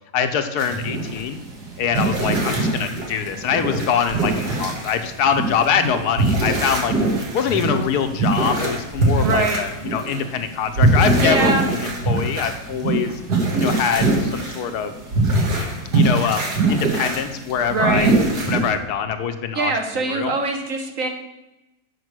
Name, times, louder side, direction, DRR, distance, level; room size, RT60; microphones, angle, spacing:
voice 1, 0.1-1.4 1.8-6.9 7.3-13.2 13.6-14.9 15.9-18.1 18.4-19.7 20.1-20.3, left 7 dB, 80° left, 8 dB, 1.3 m, -23 dB
sound 1, 0.6-18.7, right 2 dB, 75° right, 2.0 m, -22 dB
voice 2, 9.2-9.6 11.2-11.7 17.7-18.2 19.5-21.1, right 3 dB, 55° right, 4 dB, 1.3 m, -23 dB
8.1 x 5.0 x 6.2 m, 0.97 s
omnidirectional pair, 1.7 m